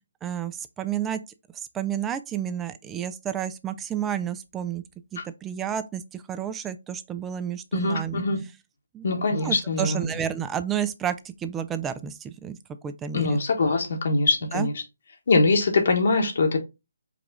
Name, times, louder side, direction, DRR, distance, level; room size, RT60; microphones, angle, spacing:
voice 1, 0.2-1.2 1.5-4.8 5.1-8.2 8.9-9.1 9.4-12.6 12.8-13.4 14.5-14.7, right 9 dB, 10° right, 0.3 m, -31 dB
voice 2, 7.7-8.4 9.0-10.0 13.1-14.7 15.3-16.6, left 3 dB, 55° left, 1.0 m, -23 dB
4.8 x 2.4 x 3.6 m
figure-of-eight pair, 145°, 0 cm